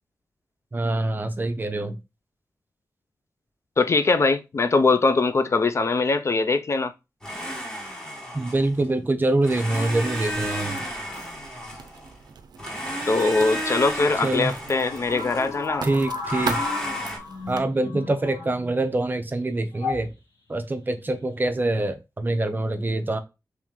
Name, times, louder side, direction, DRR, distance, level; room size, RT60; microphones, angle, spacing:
voice 1, 0.7-2.0 8.3-10.8 14.2-14.5 15.8-16.6 17.5-20.1 20.5-23.2, right 2 dB, 30° right, 0.5 m, -25 dB
voice 2, 3.8-6.9 13.1-15.9, left 3 dB, 45° left, 0.3 m, -22 dB
Domestic sounds home sounds, 7.2-8.9 9.4-12.2 12.6-15.6 16.2-17.2, equal, 10° left, 1.2 m, -33 dB
Writing, 9.7-17.6, right 5 dB, 85° right, 0.4 m, -39 dB
sound 1, 15.0-18.9 19.7-20.1 21.0-21.4, left 4 dB, 85° left, 1.4 m, -33 dB
3.1 x 3.0 x 3.5 m
wide cardioid pair, 110°, 7 cm